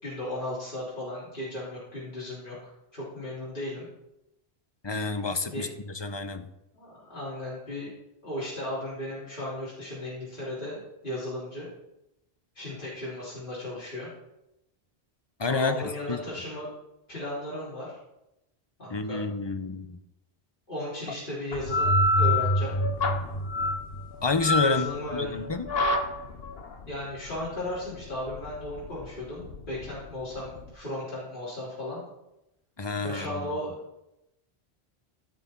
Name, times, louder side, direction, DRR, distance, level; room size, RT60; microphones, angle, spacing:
voice 1, 0.0-2.6 2.9-3.8 5.5-5.7 6.7-7.9 8.2-10.8 11.0-11.7 12.6-14.1 15.5-16.7 17.1-18.0 18.8-19.2 20.7-22.7 24.6-25.4 26.9-32.0 33.0-33.7, left 1 dB, 50° left, -9 dB, 3.5 m, -35 dB
voice 2, 4.8-6.5 15.4-16.2 18.9-20.0 24.2-24.9 25.1-25.7 32.8-33.5, left 3 dB, 30° left, 8 dB, 0.7 m, -29 dB
sound 1, 21.5-30.7, left 2 dB, 65° left, 1.2 m, -29 dB
sound 2, 21.7-24.5, right 1 dB, 90° left, 1.8 m, -28 dB
15.5 x 6.2 x 4.5 m, 0.89 s
omnidirectional pair, 1.1 m